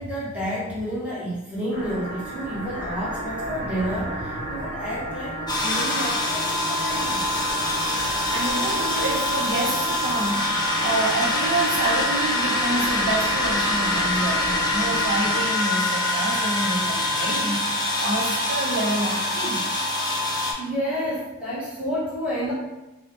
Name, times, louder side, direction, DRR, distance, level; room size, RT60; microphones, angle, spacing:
voice 1, 0.0-7.2 20.6-22.5, equal, 5° right, -9 dB, 0.9 m, -30 dB
sound 1, 1.7-15.4, right 1 dB, 25° right, 1.3 m, -33 dB
sound 2, 5.5-20.5, left 1 dB, 20° left, 0.4 m, -25 dB
voice 2, 8.3-10.5 10.8-19.7, right 2 dB, 55° right, -3 dB, 0.7 m, -28 dB
2.7 x 2.0 x 2.9 m, 0.99 s
head